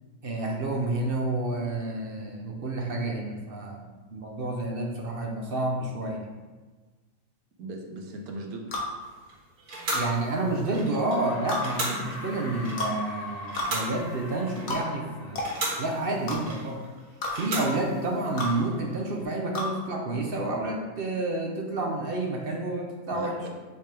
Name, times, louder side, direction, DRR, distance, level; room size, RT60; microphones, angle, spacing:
voice 1, 0.2-6.2 9.9-15.5 15.8-16.8 17.3-23.4, right 2 dB, 50° right, 0 dB, 0.8 m, -29 dB
voice 2, 7.6-8.8 23.1-23.5, right 2 dB, 85° right, 3 dB, 1.4 m, -38 dB
sound 1, 8.7-8.9 9.9-10.1 11.5-11.6 12.8-13.0 13.6-13.7 14.7-14.8 15.3-15.5 16.3-16.4 17.2-17.3 18.4-18.5 19.5-19.7, left 2 dB, 70° left, 1.6 m, -30 dB
sound 2, 9.0-19.2, right 2 dB, 70° right, 1.9 m, -37 dB
sound 3, 10.9-16.1, left 2 dB, 45° left, 1.1 m, -42 dB
6.6 x 5.9 x 3.4 m, 1.3 s
omnidirectional pair, 1.5 m